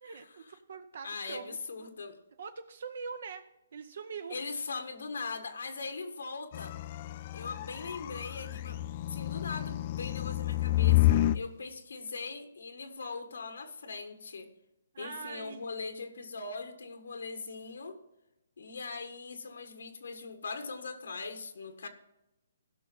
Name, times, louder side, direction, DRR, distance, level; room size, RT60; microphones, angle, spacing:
voice 1, 0.0-1.9 2.4-4.4 14.9-15.7, right 5 dB, 60° right, 9 dB, 0.7 m, -43 dB
voice 2, 1.0-2.2 4.3-6.7 7.3-8.8 9.1-14.5 15.0-18.0 18.6-21.9, left 4 dB, 85° left, 7 dB, 1.5 m, -40 dB
sound 1, 6.5-11.4, left 14 dB, 35° left, 0.3 m, -29 dB
16.0 x 6.0 x 3.9 m, 0.91 s
hypercardioid pair, 160°, 0 cm